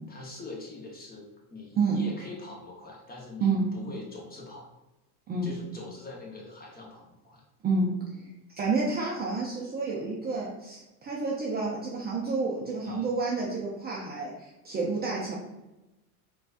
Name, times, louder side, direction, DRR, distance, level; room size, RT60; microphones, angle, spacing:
voice 1, 0.1-4.7 5.4-7.4 12.8-13.1, left 3 dB, 20° left, -2 dB, 0.8 m, -43 dB
voice 2, 7.6-15.4, right 3 dB, 25° right, -4 dB, 0.5 m, -29 dB
3.9 x 2.3 x 2.3 m, 0.97 s
supercardioid pair, 110°, 44 cm